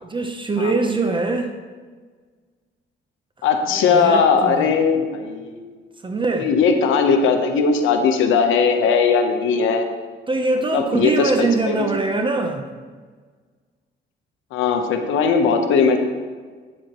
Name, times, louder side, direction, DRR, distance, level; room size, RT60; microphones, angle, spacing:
voice 1, 0.0-1.5 3.7-4.6 6.0-6.5 10.3-12.7, right 3 dB, 25° right, 5 dB, 0.7 m, -22 dB
voice 2, 3.4-5.7 6.4-9.9 10.7-11.9 14.5-16.0, left 5 dB, 85° left, 5 dB, 0.9 m, -19 dB
8.9 x 7.7 x 3.0 m, 1.5 s
cardioid pair, 90°, 20 cm